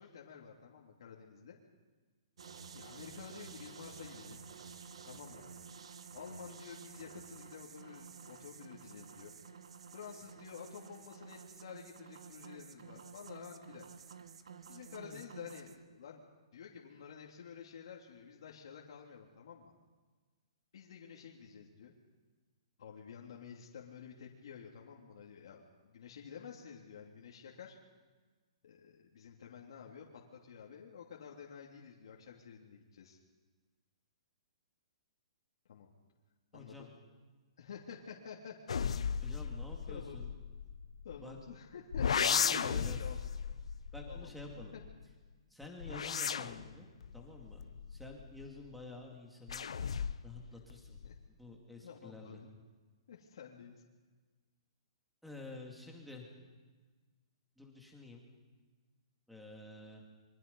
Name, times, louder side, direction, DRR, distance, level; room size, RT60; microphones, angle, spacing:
voice 1, 0.0-1.6 2.7-4.4 5.1-5.5 6.1-9.3 9.9-13.9 14.7-16.2 16.5-19.7 20.7-21.9 22.8-27.7 28.6-33.2 35.7-35.9 36.5-36.9 37.6-39.0 39.9-40.2 41.0-43.2 44.1-44.3 44.7-44.8 51.0-51.1 51.8-52.5 53.1-53.7, left 7 dB, 55° left, -2 dB, 2.9 m, -50 dB
sound 1, 2.4-15.8, right 6 dB, 75° right, 1.8 m, -52 dB
voice 2, 36.5-36.9 39.2-40.3 41.2-41.4 42.2-43.0 43.9-44.7 45.5-47.6 47.9-49.7 50.2-51.0 51.4-52.4 55.2-56.3 57.6-58.2 59.3-60.0, left 2 dB, ahead, 0 dB, 2.4 m, -49 dB
sound 2, 38.7-41.4 41.9-45.0 45.6-48.7 49.5-50.4 50.7-51.3, left 7 dB, 80° left, 1.0 m, -36 dB
26.5 x 24.0 x 5.5 m, 1.4 s
hypercardioid pair, 175°, 3 cm